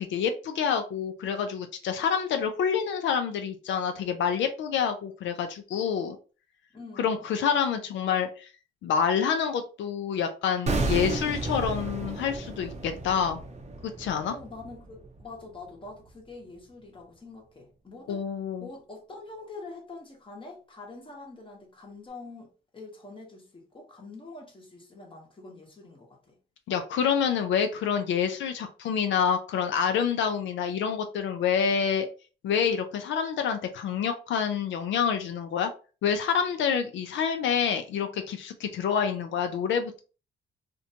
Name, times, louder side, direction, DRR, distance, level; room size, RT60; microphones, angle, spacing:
voice 1, 0.0-6.2 7.0-8.5 8.8-13.4 13.8-14.3 18.1-18.7 26.7-32.1 32.4-35.7 36.0-40.0, left 7 dB, 70° left, 0.4 m, -27 dB
voice 2, 6.7-7.3 14.3-18.2 18.6-26.4, left 3 dB, 25° left, 0.9 m, -45 dB
sound 1, 10.7-15.7 15.9-16.1, right 3 dB, 35° right, 0.6 m, -33 dB
2.5 x 2.2 x 2.7 m
cardioid pair, 90°, 20 cm